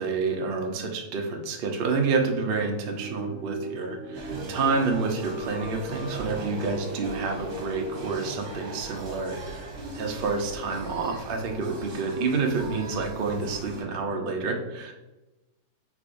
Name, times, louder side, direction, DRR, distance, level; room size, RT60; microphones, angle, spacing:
voice 1, 0.0-9.7 9.9-14.9, right 4 dB, 75° right, 2 dB, 0.5 m, -28 dB
sound 1, 2.9-8.3, right 1 dB, 20° right, 0.4 m, -39 dB
sound 2, 4.1-13.8, right 3 dB, 60° right, 1.4 m, -39 dB
4.8 x 3.7 x 2.5 m, 1.0 s
omnidirectional pair, 1.9 m